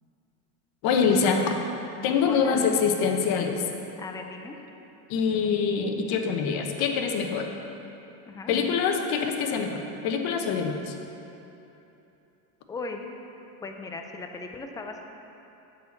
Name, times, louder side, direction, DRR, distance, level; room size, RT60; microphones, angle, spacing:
voice 1, 0.8-1.6 2.0-3.6 5.1-7.5 8.5-10.9, left 6 dB, 55° left, 4 dB, 1.1 m, -25 dB
voice 2, 2.2-2.7 4.0-4.6 8.3-8.5 12.7-13.0 13.6-15.0, left 3 dB, 10° left, 4 dB, 0.3 m, -37 dB
9.1 x 4.4 x 7.3 m, 2.9 s
supercardioid pair, 125°, 45 cm